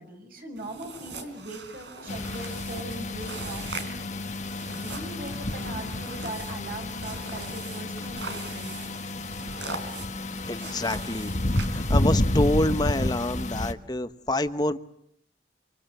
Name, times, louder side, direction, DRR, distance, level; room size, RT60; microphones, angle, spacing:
voice 1, 0.0-4.0 4.6-9.1, right 1 dB, 50° right, 3 dB, 6.4 m, -40 dB
sound 1, 0.6-12.2, right 3 dB, 80° right, 3.9 m, -42 dB
sound 2, 2.1-13.7, left 1 dB, 40° left, 1.3 m, -30 dB
voice 2, 10.5-11.3 11.7-14.8, left 1 dB, 20° left, 11 dB, 1.0 m, -27 dB
26.5 x 25.5 x 7.9 m, 0.73 s
head